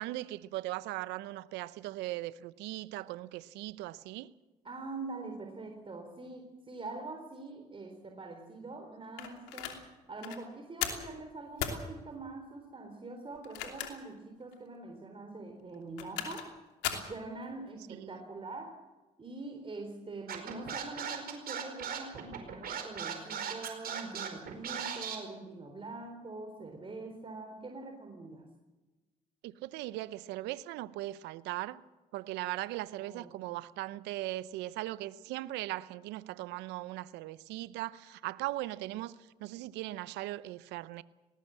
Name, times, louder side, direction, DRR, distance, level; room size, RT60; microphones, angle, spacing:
voice 1, 0.0-4.3 17.9-18.1 29.4-31.8 32.1-41.0, right 16 dB, 75° right, 0.8 m, -39 dB
voice 2, 4.6-16.6 16.9-18.8 19.2-28.5 33.0-33.4, right 3 dB, 30° right, 3.9 m, -44 dB
sound 1, 9.2-9.8 10.2-10.4 10.8-11.1 11.6-11.8 13.3-14.1 14.5-14.6 15.7-16.5 16.8-17.1, left 10 dB, 80° left, 2.9 m, -36 dB
Scratching (performance technique), 20.3-25.2, right 8 dB, 60° right, 4.8 m, -37 dB
20.0 x 18.5 x 7.7 m
hypercardioid pair, 60°, 18 cm